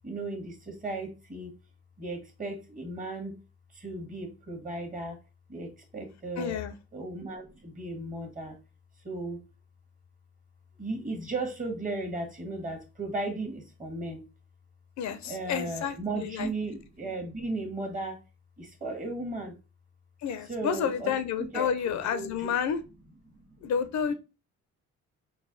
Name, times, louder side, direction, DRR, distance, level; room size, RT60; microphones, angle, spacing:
voice 1, 0.0-1.6 2.0-3.4 3.7-5.2 5.5-6.6 6.9-8.6 9.0-9.4 10.8-14.2 15.1-18.2 18.6-19.6 20.4-22.6 23.2-23.7, right 2 dB, 25° right, 1.4 m, -36 dB
voice 2, 6.4-6.7 15.0-16.5 20.2-22.8 23.6-24.1, left 7 dB, 65° left, 0.6 m, -30 dB
4.0 x 2.2 x 3.8 m
cardioid pair, 90°, 30 cm